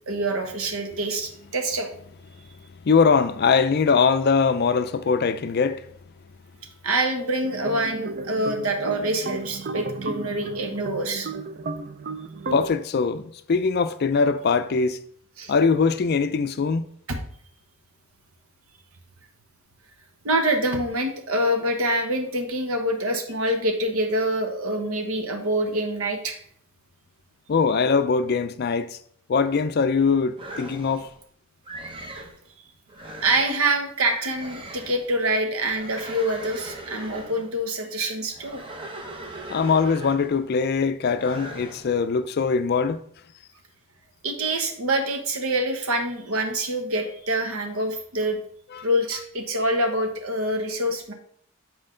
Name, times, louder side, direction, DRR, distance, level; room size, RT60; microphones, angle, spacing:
voice 1, 0.1-1.9 6.8-11.3 15.4-15.5 17.1-17.2 20.2-26.4 33.2-38.6 44.2-48.4 48.8-51.1, right 1 dB, 80° right, 1.1 m, -25 dB
voice 2, 2.8-5.8 12.5-13.2 13.5-15.0 15.5-16.8 27.5-29.0 29.3-31.1 39.5-43.0 48.7-48.8, left 5 dB, 50° left, 0.4 m, -22 dB
sound 1, 7.4-12.7, right 3 dB, 45° right, 0.4 m, -33 dB
sound 2, 30.4-31.2 31.6-32.4 32.9-33.5 34.1-35.1 35.6-37.6 38.3-40.5 41.1-41.9, right 1 dB, 25° right, 0.9 m, -39 dB
7.6 x 4.5 x 3.8 m
head